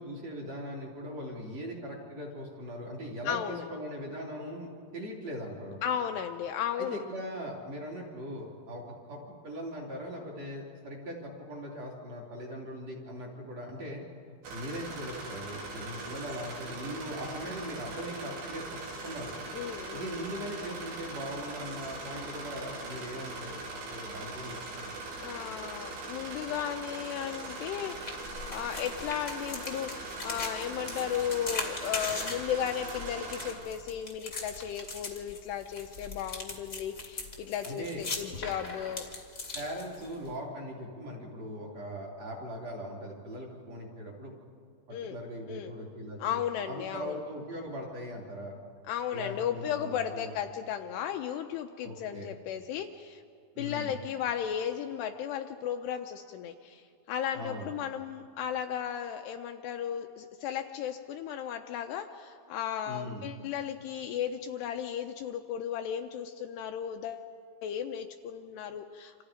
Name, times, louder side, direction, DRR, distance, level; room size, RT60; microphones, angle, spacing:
voice 1, 0.0-5.8 6.8-19.3 19.9-24.9 37.6-38.0 39.5-44.3 44.9-46.4 46.7-48.6 49.1-50.3 51.8-52.3 53.5-54.0 57.3-57.7 62.8-63.3, equal, 40° right, -3 dB, 3.9 m, -40 dB
voice 2, 3.3-3.6 5.8-7.0 19.5-20.1 25.2-39.1 44.9-45.2 45.5-45.7 46.2-47.2 48.9-53.2 53.6-67.3 67.6-69.2, left 9 dB, 80° left, 5 dB, 2.6 m, -35 dB
sound 1, 14.4-33.5, right 2 dB, 85° right, 5.8 m, -41 dB
sound 2, 27.9-40.3, left 3 dB, 30° left, 1.5 m, -40 dB
28.5 x 26.5 x 5.1 m, 2.2 s
omnidirectional pair, 5.2 m